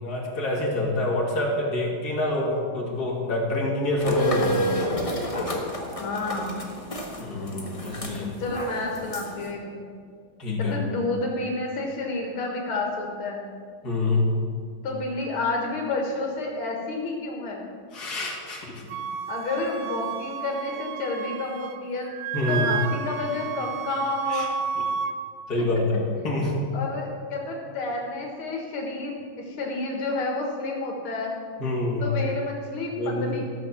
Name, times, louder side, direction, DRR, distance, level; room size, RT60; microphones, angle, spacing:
voice 1, 0.0-4.9 7.2-8.3 10.4-10.8 13.8-14.3 17.9-18.7 22.3-22.8 24.3-24.5 25.5-26.5 31.6-32.1 33.0-33.3, left 2 dB, 50° left, -3 dB, 2.8 m, -26 dB
sound 1, 4.0-9.5, equal, 20° left, 1.2 m, -30 dB
voice 2, 6.0-6.6 8.4-9.9 10.6-13.5 14.8-17.6 19.3-22.1 22.5-24.5 26.7-31.3 32.0-33.5, left 3 dB, 85° left, 0 dB, 2.5 m, -30 dB
Wind instrument woodwind instrument, 18.9-21.8 22.1-25.1, right 7 dB, 70° right, 1.1 m, -31 dB
14.0 x 6.5 x 7.2 m, 2.1 s
omnidirectional pair, 2.3 m